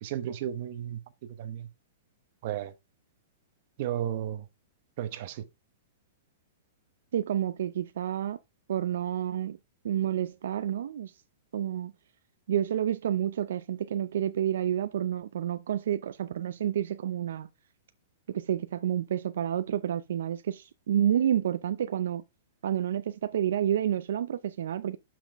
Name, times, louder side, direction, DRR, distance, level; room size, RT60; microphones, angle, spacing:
voice 1, 0.0-1.0 1.4-1.7 2.4-2.7 3.8-4.4 5.0-5.4, right 11 dB, 40° right, 0.9 m, -33 dB
voice 2, 7.1-8.4 8.7-9.6 9.8-11.1 11.5-11.9 12.5-17.5 18.3-22.2 22.6-25.0, right 10 dB, 70° right, 0.5 m, -29 dB
7.1 x 6.0 x 3.5 m
hypercardioid pair, 170°, 0 cm